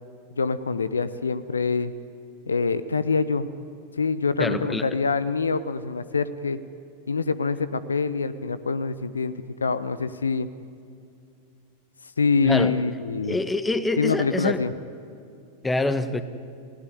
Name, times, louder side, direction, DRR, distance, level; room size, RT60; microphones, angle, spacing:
voice 1, 0.3-1.9 2.5-3.5 4.0-6.6 7.1-9.3 9.6-10.5 12.2-13.4 14.0-14.7, left 4 dB, 75° left, 15 dB, 0.8 m, -25 dB
voice 2, 4.4-4.9 12.4-12.7 13.3-14.6 15.6-16.2, left 2 dB, 10° left, 13 dB, 1.2 m, -25 dB
28.0 x 17.0 x 9.7 m, 2.5 s
figure-of-eight pair, 90°, 0 cm